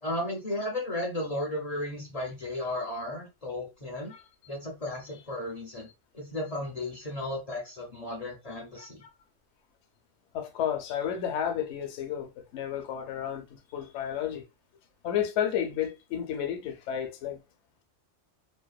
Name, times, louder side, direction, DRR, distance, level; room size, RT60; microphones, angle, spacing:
voice 1, 0.0-4.1 4.5-5.9 6.1-9.0, left 1 dB, 50° left, 0.4 m, -34 dB
voice 2, 8.8-9.1 10.3-14.4 15.0-17.4, left 9 dB, 70° left, 0.8 m, -32 dB
2.6 x 2.2 x 2.2 m
omnidirectional pair, 1.3 m